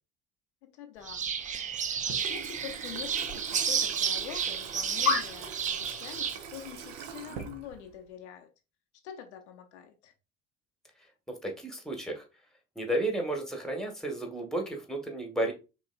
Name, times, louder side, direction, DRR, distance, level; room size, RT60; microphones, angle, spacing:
voice 1, 0.7-1.3 2.0-8.5 9.0-10.1, left 10 dB, 65° left, 0.7 m, -45 dB
sound 1, 1.0-6.4, right 7 dB, 20° right, 0.4 m, -32 dB
sound 2, 1.4-7.4, left 5 dB, 90° left, 1.0 m, -38 dB
Water tap faucet / Sink (filling or washing), 1.8-8.1, right 7 dB, 60° right, 0.7 m, -44 dB
voice 2, 11.4-12.2 12.8-15.5, right 1 dB, ahead, 1.1 m, -32 dB
5.1 x 3.1 x 2.2 m
figure-of-eight pair, 55°, 37 cm